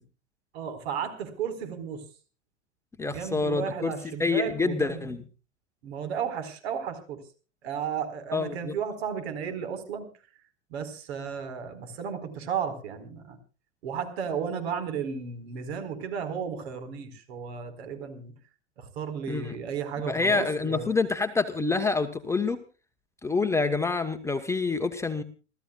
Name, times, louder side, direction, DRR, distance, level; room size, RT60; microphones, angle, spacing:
voice 1, 0.5-2.0 3.1-5.1 5.8-7.2 7.6-10.1 10.7-13.4 13.8-18.3 18.8-20.9, right 7 dB, 60° right, 8 dB, 4.6 m, -34 dB
voice 2, 3.0-5.2 8.3-8.7 19.3-19.5 20.1-22.6 23.2-25.2, left 4 dB, 10° left, 6 dB, 1.1 m, -27 dB
29.5 x 14.0 x 2.4 m, 0.35 s
hypercardioid pair, 105°, 36 cm